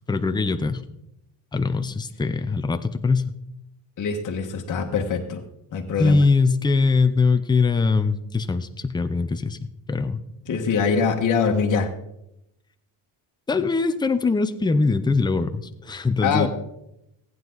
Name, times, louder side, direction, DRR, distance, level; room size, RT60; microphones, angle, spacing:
voice 1, 0.1-0.8 1.5-3.3 6.0-9.6 9.9-10.2 13.5-16.5, left 4 dB, 10° left, 9 dB, 0.6 m, -22 dB
voice 2, 4.0-5.4 5.7-6.2 10.5-11.9 16.2-16.5, left 5 dB, 40° left, 2 dB, 1.5 m, -23 dB
15.5 x 9.3 x 4.0 m, 0.82 s
cardioid pair, 110°, 48 cm